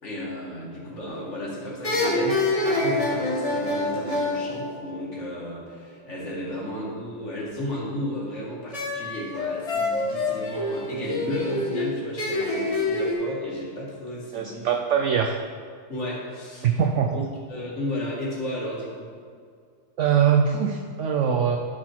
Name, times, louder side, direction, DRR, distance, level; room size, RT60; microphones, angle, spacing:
voice 1, 0.0-14.7 15.9-16.8 17.1-17.2 17.5-19.1, left 1 dB, 45° left, -5 dB, 2.1 m, -33 dB
sound 1, 1.1-1.4 1.8-5.5 8.7-13.1, left 2 dB, 20° left, 1.3 m, -27 dB
voice 2, 14.3-15.3 16.6-17.2 20.0-21.6, right 7 dB, 80° right, 4 dB, 0.6 m, -22 dB
11.5 x 4.4 x 4.4 m, 2.1 s
omnidirectional pair, 1.8 m